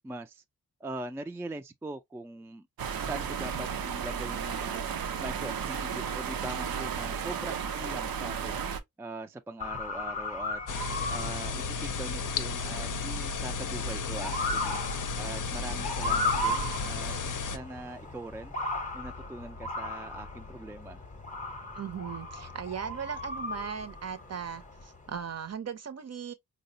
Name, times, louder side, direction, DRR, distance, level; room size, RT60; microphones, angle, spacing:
voice 1, 0.0-0.4 0.8-2.7 3.0-4.8 5.2-8.6 9.0-10.6 11.1-14.8 15.2-17.1 17.5-18.6 18.9-21.0, right 2 dB, 10° right, 0.3 m, -41 dB
sound 1, 2.8-8.8, right 7 dB, 90° right, 0.6 m, -34 dB
Motor vehicle (road) / Siren, 9.6-25.2, left 2 dB, 20° left, 0.7 m, -36 dB
sound 2, 10.7-17.6, left 4 dB, 60° left, 0.6 m, -33 dB
voice 2, 21.7-26.3, right 7 dB, 45° right, 0.6 m, -38 dB
4.6 x 2.0 x 2.6 m
wide cardioid pair, 95°, 35 cm